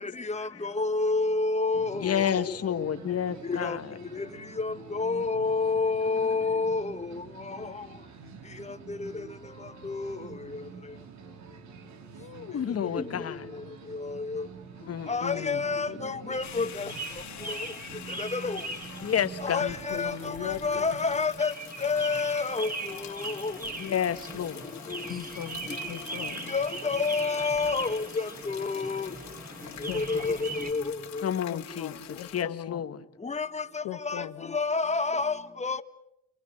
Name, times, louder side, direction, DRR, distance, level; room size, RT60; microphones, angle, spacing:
voice 1, 0.4-2.2 3.5-3.8 4.6-6.9 9.0-9.1 9.9-10.2 13.0-13.1 15.1-16.7 18.3-18.6 19.4-20.1 20.4-21.5 21.8-22.7 23.4-23.5 26.5-28.0 28.5-29.1 29.9-30.4 30.7-30.8 33.3-33.5 34.1-34.2 34.5-35.8, left 4 dB, 25° left, 1.7 m, -28 dB
sound 1, 1.7-21.3, right 6 dB, 65° right, 2.5 m, -47 dB
voice 2, 1.9-3.8 12.2-13.4 14.9-15.6 19.0-19.6 23.8-24.6 31.2-31.9 32.3-33.0, left 9 dB, 50° left, 1.6 m, -30 dB
voice 3, 15.9-16.3 19.6-21.0 25.1-26.6 29.9-30.5 31.5-32.8 33.8-34.6, left 12 dB, 85° left, 1.4 m, -39 dB
sound 2, 16.3-30.7, right 3 dB, 30° right, 5.8 m, -40 dB
sound 3, 16.4-32.4, left 10 dB, 70° left, 2.3 m, -46 dB
29.5 x 24.5 x 7.8 m
cardioid pair, 90°, 30 cm